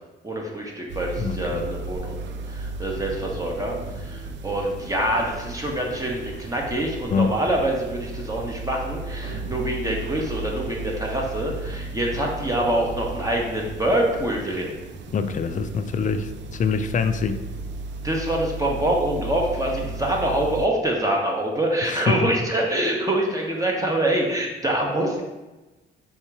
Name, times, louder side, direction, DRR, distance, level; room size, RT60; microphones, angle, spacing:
voice 1, 0.2-2.2 2.5-14.8 18.0-25.2, right 1 dB, 15° right, -1 dB, 0.9 m, -25 dB
sound 1, 0.9-20.7, right 3 dB, 65° right, 0.4 m, -35 dB
voice 2, 1.2-1.6 7.1-7.3 15.1-17.4 21.8-22.3, left 5 dB, 40° left, 9 dB, 0.4 m, -25 dB
3.7 x 2.8 x 4.6 m, 1.1 s
cardioid pair, 90°, 20 cm